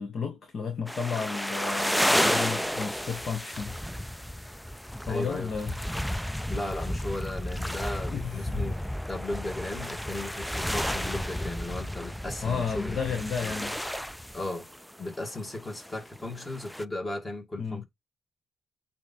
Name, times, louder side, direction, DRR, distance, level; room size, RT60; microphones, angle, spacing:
voice 1, 0.0-3.7 5.1-5.8 8.1-8.6 12.4-13.8 17.6-17.8, left 6 dB, 50° left, 1.2 m, -32 dB
sound 1, 0.9-16.8, equal, ahead, 0.3 m, -32 dB
voice 2, 5.1-5.5 6.5-8.8 9.1-13.5 14.3-14.7 15.0-17.8, left 2 dB, 20° left, 2.3 m, -36 dB
8.4 x 2.9 x 4.5 m
cardioid pair, 90°, 0 cm